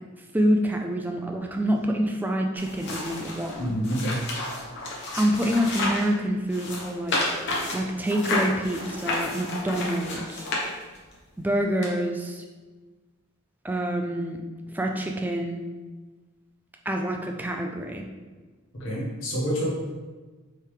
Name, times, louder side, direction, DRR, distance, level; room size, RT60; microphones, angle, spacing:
voice 1, 0.3-3.7 5.2-7.2 7.7-10.5 11.4-12.4 13.6-14.4 14.7-15.6 16.9-18.1, equal, 10° right, 2 dB, 0.3 m, -26 dB
sound 1, 2.6-6.1 6.5-11.1 11.8-11.9, left 2 dB, 55° left, 0.9 m, -31 dB
voice 2, 3.6-4.2 18.8-19.7, equal, 70° left, -5 dB, 1.4 m, -27 dB
4.6 x 3.3 x 3.3 m, 1.3 s
head